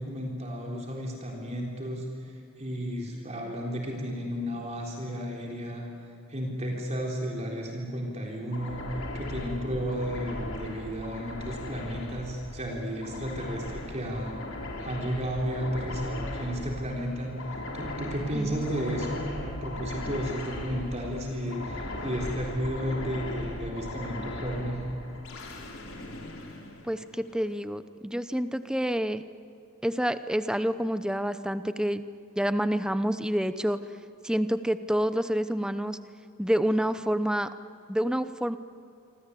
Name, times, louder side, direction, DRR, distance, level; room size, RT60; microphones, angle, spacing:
voice 1, 0.0-5.9 6.3-8.8 9.1-14.3 14.8-17.3 17.7-24.8, equal, 30° right, -1 dB, 3.8 m, -33 dB
sound 1, 8.5-27.4, left 1 dB, 70° left, 4.4 m, -38 dB
voice 2, 18.3-18.6 26.8-29.2 29.8-32.0 32.4-33.8 34.2-36.0 36.4-37.5 37.9-38.6, equal, 5° right, 11 dB, 0.8 m, -28 dB
27.5 x 25.5 x 8.5 m, 2.6 s
head